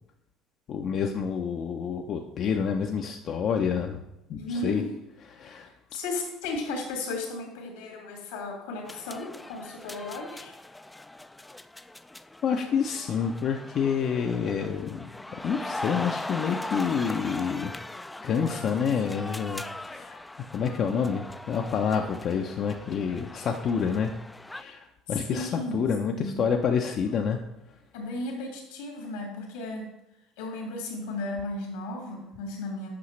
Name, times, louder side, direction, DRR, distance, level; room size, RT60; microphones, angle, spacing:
voice 1, 0.7-4.0 4.3-4.8 5.3-5.7 12.4-15.1 15.4-17.7 18.2-20.2 20.5-24.1 24.5-27.4, left 6 dB, 55° left, 3 dB, 0.6 m, -28 dB
voice 2, 4.3-4.9 5.9-10.5 25.1-25.8 26.1-26.4 27.9-29.9 30.4-32.9, left 2 dB, 85° left, 0 dB, 2.1 m, -35 dB
sound 1, 8.9-24.6, left 2 dB, 10° left, 0.3 m, -40 dB
8.3 x 5.6 x 3.2 m, 0.92 s
hypercardioid pair, 70°, 0 cm